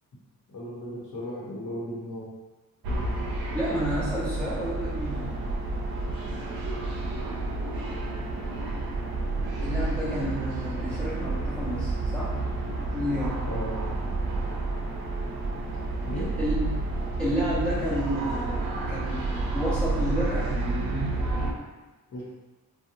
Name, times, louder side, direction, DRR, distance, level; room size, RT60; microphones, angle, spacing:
voice 1, 0.5-2.3 13.4-13.8 16.0-16.3 22.1-22.2, equal, 60° left, -7 dB, 0.8 m, -36 dB
sound 1, 2.8-21.5, right 2 dB, 85° right, 0.6 m, -30 dB
voice 2, 3.5-5.4 9.6-12.4 12.9-13.4 16.1-16.8 17.2-20.5, equal, 5° left, -11 dB, 0.9 m, -31 dB
2.8 x 2.1 x 2.5 m, 1.2 s
wide cardioid pair, 155°, 35 cm